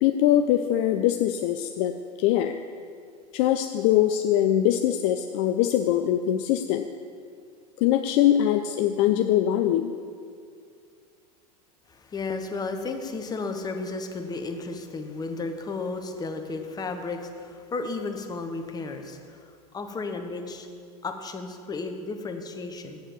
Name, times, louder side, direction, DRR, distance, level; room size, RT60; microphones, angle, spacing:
voice 1, 0.0-2.6 3.3-6.9 7.8-9.9, left 11 dB, 45° left, 7 dB, 0.4 m, -22 dB
voice 2, 11.9-20.7 21.0-23.0, left 3 dB, 20° left, 6 dB, 1.0 m, -33 dB
7.7 x 7.1 x 6.9 m, 2.2 s
figure-of-eight pair, 85°, 20 cm